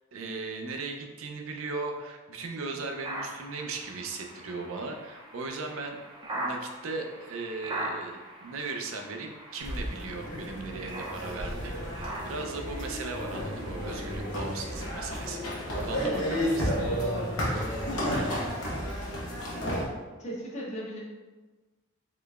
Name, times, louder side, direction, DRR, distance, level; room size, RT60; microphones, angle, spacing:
voice 1, 0.1-6.0 6.3-15.4 15.7-16.7, right 3 dB, 70° right, 3 dB, 0.5 m, -37 dB
sound 1, 2.9-15.0, right 1 dB, 20° right, 0.5 m, -41 dB
sound 2, 9.6-19.8, equal, 80° left, 0.9 m, -32 dB
voice 2, 16.0-16.5 16.8-17.5 17.9-18.3 19.6-21.0, equal, 35° left, -4 dB, 0.8 m, -38 dB
3.8 x 3.1 x 2.3 m, 1.2 s
head